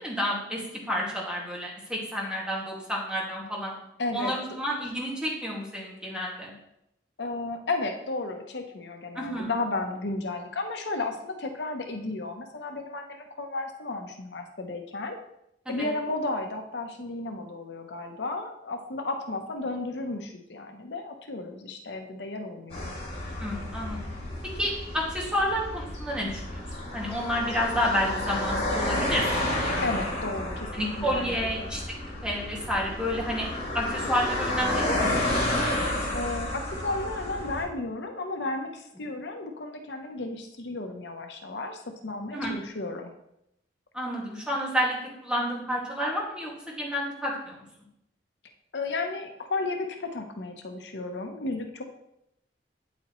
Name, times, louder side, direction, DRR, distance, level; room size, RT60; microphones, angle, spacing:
voice 1, 0.0-3.7 4.1-6.5 9.2-9.5 15.7-15.9 23.4-24.0 24.6-29.4 30.7-31.8 32.2-33.5 33.7-35.1 42.3-42.5 43.9-44.9 45.2-47.6, equal, 5° right, -3 dB, 2.1 m, -30 dB
voice 2, 4.0-4.4 7.2-15.2 15.7-22.9 29.8-31.7 36.1-43.1 48.7-51.8, left 2 dB, 75° left, 5 dB, 0.9 m, -33 dB
sound 1, 22.7-37.6, left 1 dB, 40° left, 3.7 m, -31 dB
8.6 x 8.4 x 3.1 m, 0.80 s
head